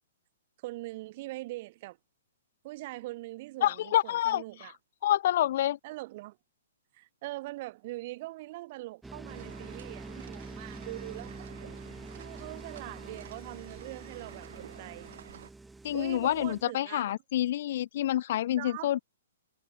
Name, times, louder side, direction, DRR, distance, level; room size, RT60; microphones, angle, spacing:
voice 1, 0.6-2.0 2.6-4.7 5.8-6.4 6.9-11.5 12.1-15.1 15.9-17.2 18.6-18.9, right 19 dB, 35° right, 3.0 m, -42 dB
voice 2, 3.6-4.4 5.0-5.8 15.8-19.0, left 12 dB, 45° left, 0.3 m, -27 dB
sound 1, 9.0-16.6, right 3 dB, 5° right, 1.5 m, -46 dB
sound 2, 9.3-15.5, right 9 dB, 60° right, 2.6 m, -50 dB
hypercardioid pair, 170°, 0 cm